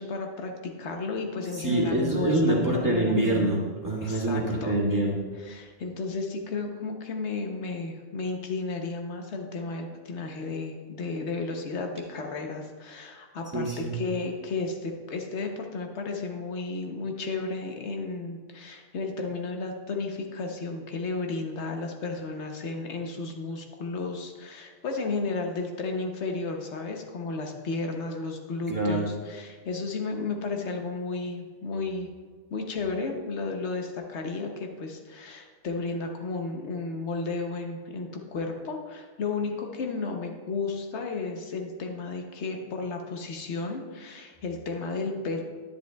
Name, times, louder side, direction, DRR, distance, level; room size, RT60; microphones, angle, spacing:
voice 1, 0.0-3.1 4.0-4.8 5.4-32.1 32.5-45.4, left 3 dB, 85° left, 3 dB, 1.2 m, -33 dB
voice 2, 1.6-5.2 13.5-13.9 28.7-29.0, right 1 dB, 15° right, -5 dB, 1.6 m, -25 dB
10.5 x 10.0 x 2.3 m, 1.4 s
omnidirectional pair, 1.1 m